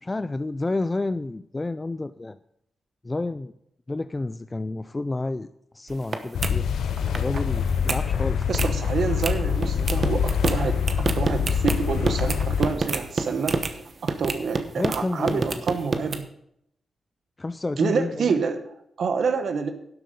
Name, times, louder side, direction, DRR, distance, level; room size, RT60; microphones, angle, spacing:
voice 1, 0.0-2.4 3.0-3.5 3.9-6.7 7.1-8.7 14.8-15.6 17.4-18.4, left 2 dB, 20° left, 12 dB, 0.3 m, -30 dB
sound 1, 5.9-6.1 6.4-6.5 6.9-7.4 7.7-8.0 8.4-8.7 9.2-9.3 9.6-13.7 14.1-15.0 15.3-16.2, right 4 dB, 45° right, 1.0 m, -27 dB
sound 2, 6.3-12.7, left 7 dB, 85° left, 0.6 m, -25 dB
voice 2, 8.5-16.3 17.8-19.7, right 5 dB, 65° right, 8 dB, 0.9 m, -28 dB
12.0 x 7.8 x 5.1 m, 0.77 s
cardioid pair, 105°, 0 cm